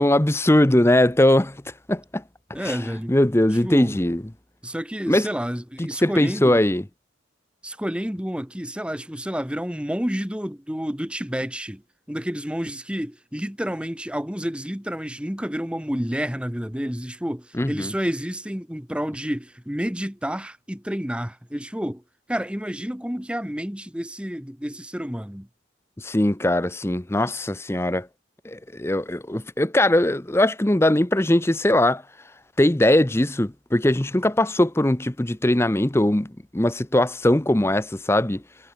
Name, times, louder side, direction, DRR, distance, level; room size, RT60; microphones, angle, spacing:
voice 1, 0.0-1.6 1.9-2.2 2.6-4.2 5.1-5.3 5.8-6.8 17.5-17.9 26.0-28.1 28.4-32.0 32.6-38.4, left 1 dB, 15° left, 0.7 m, -20 dB
voice 2, 2.5-3.1 3.6-4.0 4.6-6.6 7.6-11.8 12.1-22.0 22.3-25.5, equal, 5° right, 1.3 m, -29 dB
head